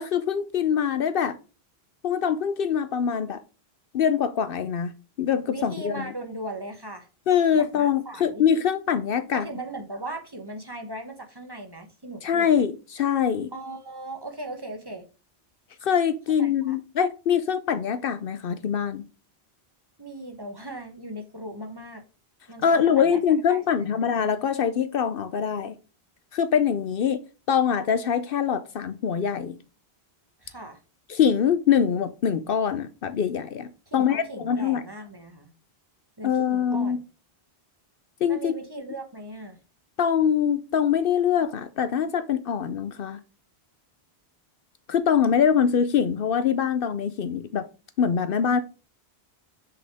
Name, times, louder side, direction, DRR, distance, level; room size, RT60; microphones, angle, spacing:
voice 1, 0.0-1.4 2.0-3.4 3.9-4.9 5.2-6.1 7.3-9.5 12.2-13.5 15.8-19.0 22.6-25.8 26.3-27.2 27.5-29.6 31.1-34.8 36.2-37.0 38.2-38.5 40.0-43.2 44.9-47.7 48.0-48.6, left 8 dB, 65° left, 0.7 m, -23 dB
voice 2, 5.5-7.1 7.5-8.4 9.3-12.5 13.5-15.1 16.4-16.8 20.0-22.0 22.5-23.2 23.5-24.0 30.4-30.8 33.9-35.5 36.2-37.0 38.3-39.6, right 1 dB, 25° right, 1.0 m, -38 dB
6.2 x 5.0 x 3.4 m
omnidirectional pair, 1.1 m